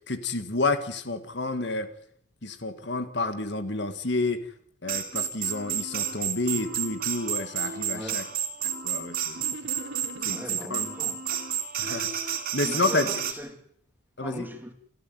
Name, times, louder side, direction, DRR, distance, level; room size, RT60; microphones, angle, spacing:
voice 1, 0.1-1.9 2.4-4.4 4.8-8.2 8.8-9.4 10.2-10.4 10.7-10.8 11.8-12.1 12.5-13.0 14.2-14.5, left 3 dB, 55° left, 1.8 m, -29 dB
sound 1, 4.9-13.3, right 9 dB, 45° right, 3.4 m, -31 dB
voice 2, 7.9-8.3 10.3-11.2 12.6-13.6 14.2-14.7, equal, 10° right, 2.8 m, -39 dB
sound 2, 9.3-10.7 11.3-12.1, right 3 dB, 80° right, 1.4 m, -42 dB
28.5 x 13.5 x 9.4 m
head